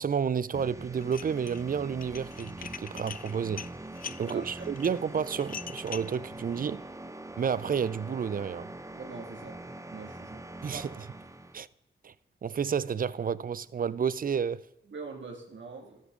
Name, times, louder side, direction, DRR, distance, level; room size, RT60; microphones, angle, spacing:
voice 1, 0.0-3.6 4.2-6.8 7.4-8.7 10.6-11.1 11.5-11.7 12.0-12.1 12.4-14.6, right 7 dB, 45° right, 0.5 m, -30 dB
sound 1, 0.5-11.6, right 2 dB, 15° right, 0.9 m, -43 dB
Dishes pots and pans, 1.0-1.6 1.9-6.2, left 7 dB, 45° left, 0.4 m, -42 dB
voice 2, 4.0-4.8 8.9-9.5 9.9-10.4 10.7-11.0 14.9-16.0, right 4 dB, 70° right, 2.2 m, -43 dB
12.5 x 9.6 x 3.7 m
cardioid pair, 50°, 20 cm